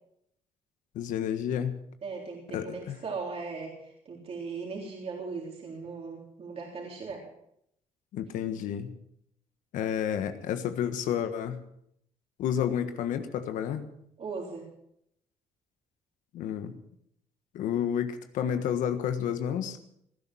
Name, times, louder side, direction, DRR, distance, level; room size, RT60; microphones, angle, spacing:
voice 1, 0.9-1.8 2.5-3.0 8.1-8.9 9.7-11.6 12.4-13.9 16.3-16.7 17.5-19.8, left 9 dB, 85° left, 9 dB, 1.5 m, -30 dB
voice 2, 2.0-7.2 14.2-14.7, right 4 dB, 50° right, -2 dB, 3.8 m, -38 dB
19.0 x 11.5 x 6.3 m, 0.74 s
cardioid pair, 90°, 13 cm